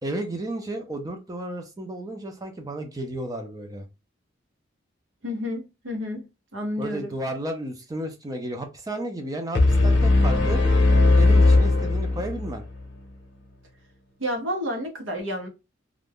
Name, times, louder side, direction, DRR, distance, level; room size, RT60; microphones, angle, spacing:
voice 1, 0.0-3.9 6.8-10.6 11.2-12.6, right 1 dB, 20° right, 0.4 m, -33 dB
voice 2, 5.2-6.2 6.5-7.1 14.2-15.5, left 1 dB, 80° right, 0.9 m, -30 dB
sound 1, 9.5-12.6, left 2 dB, 60° left, 0.8 m, -18 dB
2.5 x 2.2 x 3.4 m
head